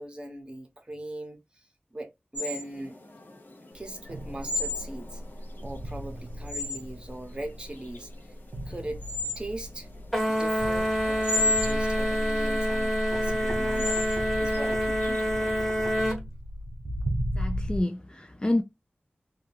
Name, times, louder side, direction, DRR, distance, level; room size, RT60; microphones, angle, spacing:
voice 1, 0.0-1.6 1.9-3.0 3.7-5.2 5.6-8.1 8.7-9.0 9.4-9.9 10.3-15.7, right 1 dB, 25° right, 0.9 m, -40 dB
sound 1, 2.4-15.8, left 2 dB, 60° left, 0.7 m, -35 dB
sound 2, 3.8-17.8, equal, 85° right, 0.5 m, -35 dB
sound 3, 10.1-16.2, equal, 5° left, 1.1 m, -27 dB
voice 2, 17.4-18.6, left 1 dB, 25° left, 0.3 m, -28 dB
2.3 x 2.1 x 3.2 m
wide cardioid pair, 65°, 4 cm